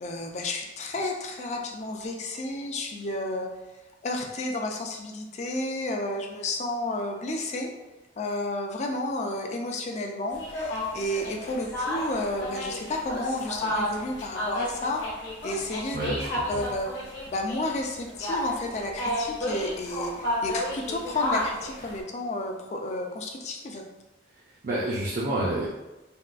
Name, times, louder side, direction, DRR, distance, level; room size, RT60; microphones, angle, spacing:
voice 1, 0.0-3.5 4.0-7.7 8.2-16.0 16.5-16.9 17.3-23.8, left 2 dB, 40° left, 2 dB, 0.4 m, -31 dB
sound 1, 10.3-22.0, left 1 dB, 70° left, 0.9 m, -32 dB
voice 2, 15.9-16.6 24.6-25.7, right 1 dB, 50° right, -5 dB, 0.4 m, -29 dB
3.5 x 2.3 x 2.4 m, 1.0 s
head